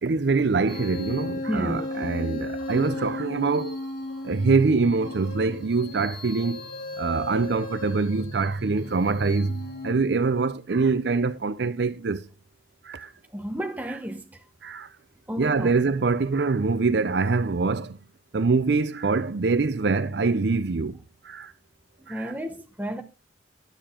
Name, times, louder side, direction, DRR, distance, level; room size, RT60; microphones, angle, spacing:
voice 1, 0.0-3.8 4.2-6.6 7.0-12.3 12.8-13.1 13.9-14.0 14.6-14.9 15.4-18.0 18.3-21.0 21.2-21.5 22.1-22.3, right 4 dB, 60° right, 0.5 m, -24 dB
sound 1, 0.7-10.0, left 1 dB, 55° left, 2.5 m, -35 dB
voice 2, 1.5-1.9 13.3-14.3 15.3-15.7 22.1-23.0, equal, 10° right, 0.8 m, -31 dB
10.5 x 6.8 x 3.7 m
head